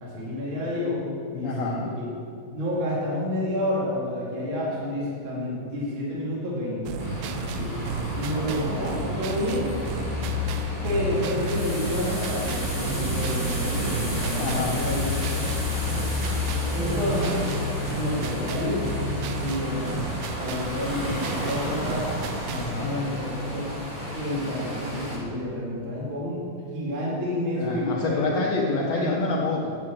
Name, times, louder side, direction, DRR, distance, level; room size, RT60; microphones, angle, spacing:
voice 1, 0.0-2.1 2.5-6.9 7.5-7.8 8.1-9.7 10.8-15.2 15.4-15.5 16.7-17.5 17.9-18.9 19.4-22.0 22.8-23.7 24.1-28.5 28.9-29.2, left 1 dB, 40° right, -6 dB, 2.7 m, -29 dB
voice 2, 1.4-1.9 14.4-14.8 22.5-22.9 27.6-29.7, left 3 dB, 90° left, -2 dB, 1.4 m, -27 dB
sound 1, 6.9-22.8, right 6 dB, 85° right, 2.3 m, -35 dB
sound 2, 7.0-25.2, left 2 dB, 20° right, 1.6 m, -30 dB
9.6 x 5.8 x 7.4 m, 2.3 s
omnidirectional pair, 4.1 m